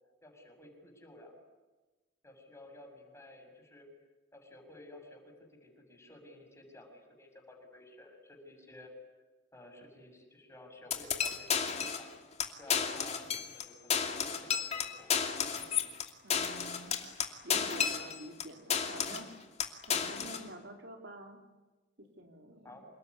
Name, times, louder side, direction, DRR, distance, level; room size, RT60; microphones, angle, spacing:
voice 1, 0.2-1.3 2.2-3.9 4.3-8.9 9.5-12.1 12.6-15.1 22.6-22.9, left 1 dB, 15° left, 2 dB, 7.1 m, -54 dB
sound 1, 10.9-12.1 12.4-12.5 12.7-13.6 13.9-18.4 18.7-19.3 19.6-20.4, left 7 dB, 35° left, 2.7 m, -32 dB
voice 2, 16.2-16.9 17.4-19.3 19.9-21.4 22.0-22.8, right 1 dB, 70° right, 3 dB, 3.9 m, -48 dB
28.5 x 19.5 x 9.9 m, 1.2 s
head